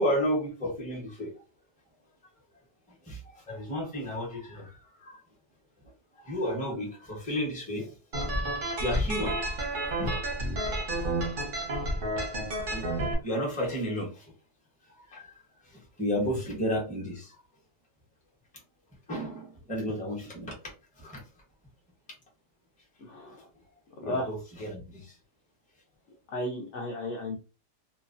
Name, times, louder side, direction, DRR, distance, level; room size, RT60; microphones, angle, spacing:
voice 1, 0.0-1.3 3.0-5.2 6.2-7.9 8.8-9.6 9.9-10.2 11.0-11.1 12.7-14.3 14.9-15.4 15.6-17.4 19.1-21.2 24.0-25.1, equal, 10° left, 0.5 m, -33 dB
sound 1, 8.1-13.1, right 1 dB, 50° right, 0.7 m, -30 dB
voice 2, 23.0-23.4 24.0-24.3 26.3-27.4, left 1 dB, 75° left, 0.6 m, -34 dB
3.0 x 2.2 x 2.5 m
omnidirectional pair, 1.8 m